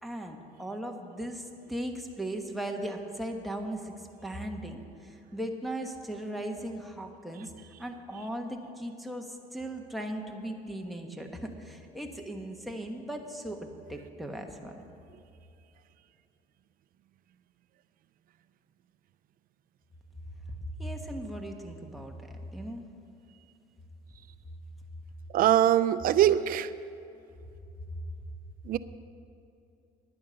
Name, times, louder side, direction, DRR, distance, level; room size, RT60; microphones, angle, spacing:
voice 1, 0.0-3.9 4.2-7.5 7.8-14.8 20.6-22.8, right 1 dB, ahead, 1 dB, 1.2 m, -38 dB
voice 2, 25.3-26.7 28.7-28.8, right 11 dB, 60° right, 14 dB, 0.5 m, -22 dB
11.0 x 9.3 x 6.7 m, 2.6 s
cardioid pair, 110°, 17 cm